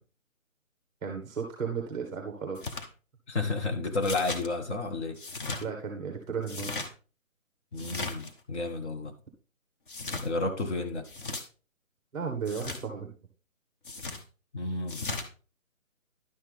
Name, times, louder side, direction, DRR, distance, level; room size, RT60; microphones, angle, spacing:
voice 1, 1.0-2.8 5.6-6.7 12.1-13.1, right 6 dB, 5° right, 0.8 m, -34 dB
sound 1, 2.6-2.9 4.0-4.5 5.2-5.6 6.4-6.9 7.8-8.3 9.9-10.3 11.0-11.4 12.5-12.8 13.8-14.2 14.9-15.3, left 3 dB, 40° left, 1.1 m, -36 dB
voice 2, 3.3-5.2 7.7-9.2 10.2-11.1 14.5-15.0, left 3 dB, 55° left, 1.5 m, -31 dB
11.0 x 6.1 x 3.5 m
figure-of-eight pair, 150°, 40 cm